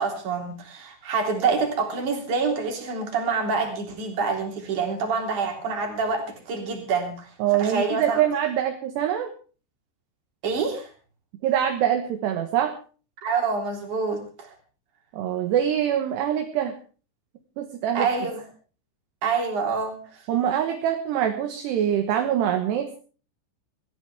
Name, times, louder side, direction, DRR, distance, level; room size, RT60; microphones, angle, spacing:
voice 1, 0.0-7.3 7.6-8.2 10.4-10.9 13.2-14.5 17.9-18.4 19.2-20.2, right 4 dB, 45° right, 3 dB, 4.5 m, -26 dB
voice 2, 7.4-9.3 11.4-12.7 15.1-16.8 17.6-18.1 20.3-22.9, right 10 dB, 70° right, 5 dB, 3.2 m, -24 dB
22.5 x 14.5 x 3.5 m, 0.38 s
omnidirectional pair, 5.4 m